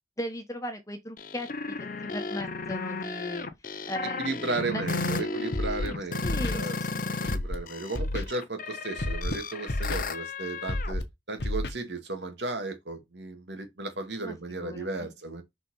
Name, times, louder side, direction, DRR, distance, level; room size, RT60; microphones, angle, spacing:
voice 1, 0.2-1.8 2.1-3.5 3.9-4.8 5.1-5.2 6.2-7.2 14.2-15.1, left 1 dB, 20° left, 1.3 m, -37 dB
sound 1, 1.2-7.4 7.7-10.9, left 3 dB, 50° left, 0.8 m, -34 dB
voice 2, 4.0-6.8 7.2-15.4, right 2 dB, 75° right, 2.2 m, -35 dB
Scratching (performance technique), 5.5-5.9 6.2-6.6 7.2-7.6 7.9-8.2 9.0-9.4 9.7-10.0 10.7-11.0 11.4-11.7, left 1 dB, 65° left, 1.4 m, -29 dB
6.0 x 4.2 x 5.5 m
head